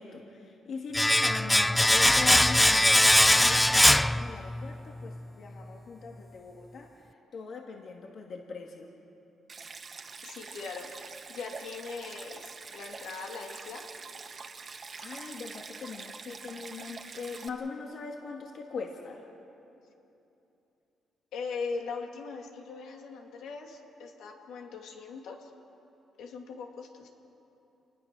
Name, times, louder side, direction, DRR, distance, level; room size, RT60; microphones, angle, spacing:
voice 1, 0.0-8.9 14.7-19.2, left 4 dB, 60° left, 1 dB, 2.0 m, -41 dB
Domestic sounds home sounds, 0.9-4.8 5.0-5.2, left 1 dB, 5° left, 0.4 m, -21 dB
Stream, 9.5-17.5, right 4 dB, 40° right, 1.5 m, -45 dB
voice 2, 10.2-13.8 21.3-25.5 26.2-27.1, left 4 dB, 80° left, 2 dB, 2.7 m, -40 dB
27.5 x 19.5 x 6.2 m, 2.9 s
cardioid pair, 90°, 0 cm